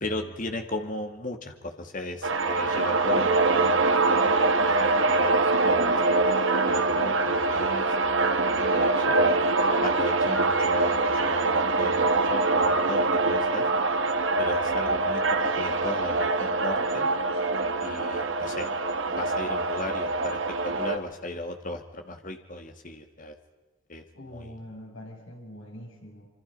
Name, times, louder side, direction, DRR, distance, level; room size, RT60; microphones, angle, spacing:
voice 1, 0.0-6.1 6.6-7.9 8.5-9.4 9.8-13.7 14.4-15.2 15.6-17.1 17.8-18.7 19.1-23.3 23.9-24.0 24.3-24.5, left 2 dB, 40° left, 6 dB, 2.0 m, -36 dB
sound 1, 2.2-21.0, right 3 dB, 65° right, 1.7 m, -24 dB
voice 2, 24.1-26.3, left 1 dB, 65° left, -1 dB, 7.8 m, -43 dB
26.5 x 25.0 x 5.4 m, 1.2 s
head